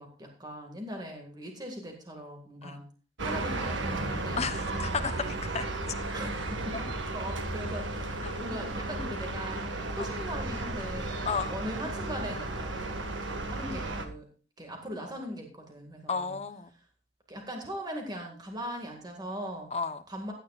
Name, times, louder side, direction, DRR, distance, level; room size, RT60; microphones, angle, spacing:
voice 1, 0.0-2.9 3.2-4.4 6.1-6.9 7.1-13.0 13.3-14.3 14.6-16.4 17.3-19.7 20.1-20.3, equal, 20° right, 2 dB, 1.9 m, -40 dB
sound 1, 3.2-14.0, right 2 dB, 80° right, 1.6 m, -34 dB
voice 2, 4.4-5.7 8.2-8.3 10.0-10.1 11.3-11.5 16.1-16.7 19.7-20.0, left 5 dB, 35° left, 9 dB, 0.9 m, -33 dB
15.5 x 10.0 x 2.4 m, 0.36 s
head